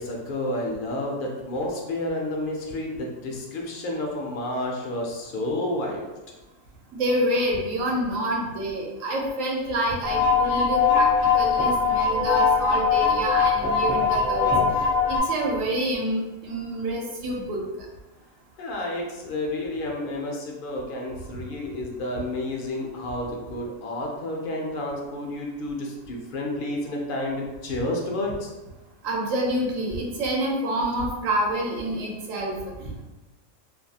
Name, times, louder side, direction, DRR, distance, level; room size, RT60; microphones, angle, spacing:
voice 1, 0.0-6.0 18.6-28.5, left 1 dB, 65° left, -1 dB, 0.5 m, -30 dB
voice 2, 6.9-11.1 11.3-14.5 15.1-17.6 29.0-33.0, right 1 dB, 80° right, -1 dB, 1.0 m, -27 dB
sound 1, 10.0-15.2, left 5 dB, 25° right, 0.3 m, -21 dB
2.5 x 2.2 x 2.7 m, 1.1 s
omnidirectional pair, 1.4 m